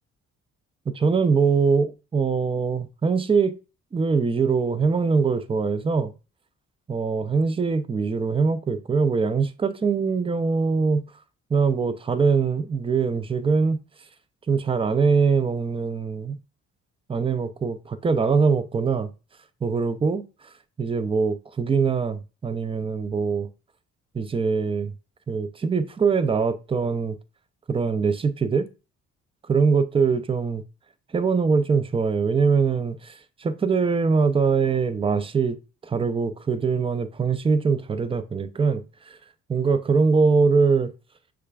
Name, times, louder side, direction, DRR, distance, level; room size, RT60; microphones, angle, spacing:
voice 1, 0.9-3.6 3.9-6.1 6.9-11.0 11.5-13.8 14.5-16.4 17.1-19.1 19.6-20.2 20.8-23.5 24.1-24.9 25.3-27.2 27.7-28.7 29.5-30.6 31.1-35.6 35.8-39.2 39.5-40.9, right 5 dB, 20° right, 0.4 m, -22 dB
6.2 x 2.4 x 2.3 m
cardioid pair, 90°, 30 cm